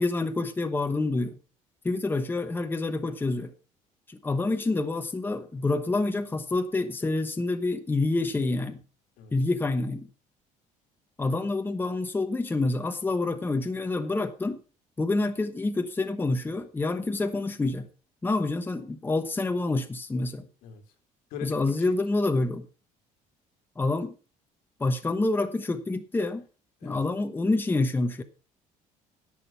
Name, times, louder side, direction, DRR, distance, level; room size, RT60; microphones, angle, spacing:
voice 1, 0.0-1.4 1.8-3.5 4.1-8.8 9.3-10.1 11.2-14.6 15.0-17.9 18.2-20.5 21.4-22.7 23.8-24.1 24.8-26.4 26.8-28.2, left 2 dB, 15° left, 7 dB, 1.1 m, -27 dB
voice 2, 9.2-9.3 20.6-20.8 21.3-21.5 21.9-22.0 26.8-27.0, left 8 dB, 85° left, 5 dB, 2.7 m, -41 dB
11.0 x 7.5 x 5.8 m, 0.35 s
cardioid pair, 125°, 14 cm